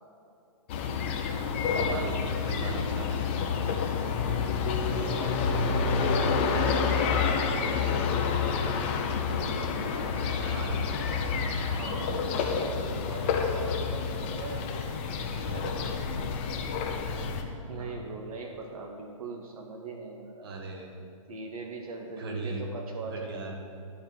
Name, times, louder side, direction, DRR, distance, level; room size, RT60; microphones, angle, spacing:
sound 1, 0.7-17.4, left 5 dB, 20° left, 0.5 m, -29 dB
voice 1, 1.6-3.4 5.9-6.3 8.2-8.5 10.1-11.1 15.3-15.9 16.9-17.3 17.8-18.1 20.4-21.0 22.2-22.6 23.1-23.6, right 3 dB, 45° right, 1 dB, 1.5 m, -39 dB
voice 2, 4.8-8.5 11.6-14.7 17.7-20.5 21.3-23.6, right 3 dB, 85° right, 2 dB, 1.1 m, -41 dB
11.5 x 4.2 x 7.4 m, 2.7 s
hypercardioid pair, 170°, 18 cm